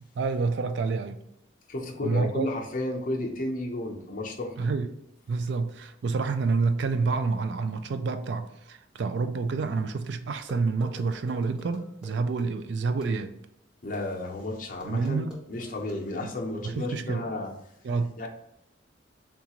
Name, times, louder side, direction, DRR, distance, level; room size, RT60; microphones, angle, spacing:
voice 1, 0.2-1.2 2.0-2.5 4.6-4.9 5.3-13.3 14.8-15.4 16.2-16.3 16.6-17.2 17.8-18.3, right 4 dB, 60° right, 0.3 m, -28 dB
voice 2, 1.7-4.7 13.8-17.5 18.2-18.3, left 2 dB, 45° left, 0.6 m, -33 dB
sound 1, 10.5-12.5 13.0-13.1 13.9-14.0 14.8-16.0, right 1 dB, 5° right, 0.7 m, -46 dB
3.8 x 2.3 x 2.9 m
head